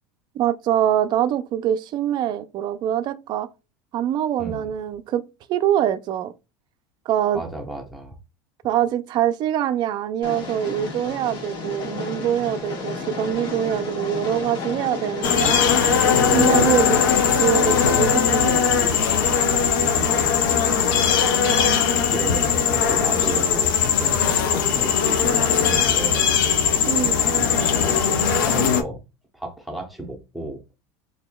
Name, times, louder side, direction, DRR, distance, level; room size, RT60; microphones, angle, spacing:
voice 1, 0.3-3.5 3.9-5.2 5.5-6.3 7.1-7.4 8.6-15.6 16.0-17.0 17.3-19.0 26.9-27.2, right 10 dB, 45° right, 0.4 m, -24 dB
voice 2, 4.4-4.7 7.3-8.2 16.3-16.6 19.8-21.7 22.1-26.3 27.4-29.0 29.3-30.6, right 1 dB, ahead, 0.9 m, -34 dB
Train, 10.2-20.2, left 4 dB, 45° left, 1.3 m, -33 dB
sound 1, 15.2-28.8, left 7 dB, 85° left, 0.6 m, -19 dB
4.2 x 2.7 x 2.2 m
supercardioid pair, 115°, 10 cm